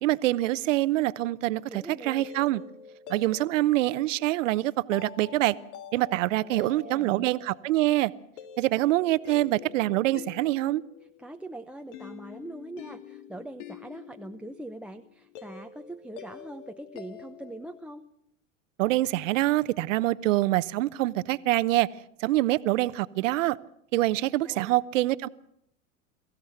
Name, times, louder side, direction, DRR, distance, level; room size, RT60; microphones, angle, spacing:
voice 1, 0.0-2.6 3.1-5.5 5.9-8.1 8.6-10.8 18.8-21.9 22.2-23.6 23.9-25.3, right 16 dB, 70° right, 17 dB, 0.9 m, -25 dB
voice 2, 1.6-2.3 6.4-7.3 11.2-18.1 24.4-24.7, right 1 dB, 5° right, 13 dB, 0.8 m, -42 dB
sound 1, 1.9-17.8, left 7 dB, 70° left, 1.8 m, -47 dB
24.0 x 15.0 x 8.0 m, 0.75 s
hypercardioid pair, 95°, 39 cm